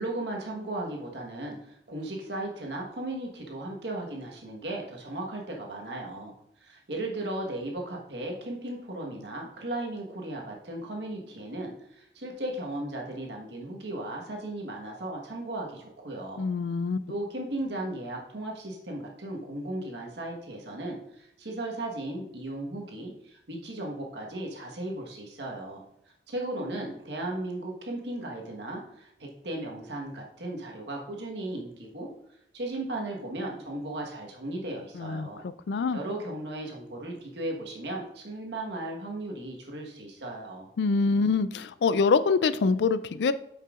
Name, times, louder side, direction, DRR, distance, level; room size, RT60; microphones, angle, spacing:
voice 1, 0.0-6.3 6.6-16.4 17.1-25.8 26.3-32.1 32.5-35.4 35.9-40.7, right 1 dB, 80° right, 0 dB, 1.3 m, -36 dB
voice 2, 16.4-17.0 35.0-35.3 35.7-36.0 40.8-43.3, left 4 dB, 75° left, 14 dB, 0.4 m, -25 dB
8.8 x 5.5 x 2.4 m, 0.78 s
head